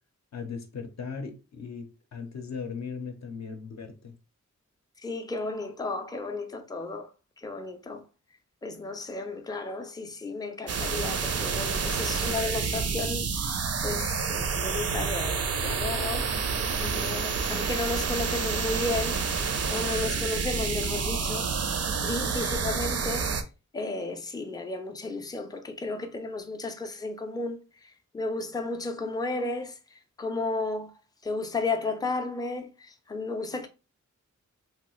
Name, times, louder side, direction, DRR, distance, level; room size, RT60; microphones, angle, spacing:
voice 1, 0.3-1.9 2.1-4.1, left 5 dB, 60° left, 0.6 m, -38 dB
voice 2, 5.0-7.1 7.4-8.0 8.6-13.5 13.8-16.3 16.8-19.2 19.7-21.5 22.0-23.3 23.7-30.9 31.2-33.7, left 3 dB, 15° left, 0.4 m, -33 dB
sound 1, 10.7-23.4, right 5 dB, 55° right, 0.4 m, -29 dB
3.1 x 2.3 x 3.0 m
wide cardioid pair, 125°, 31 cm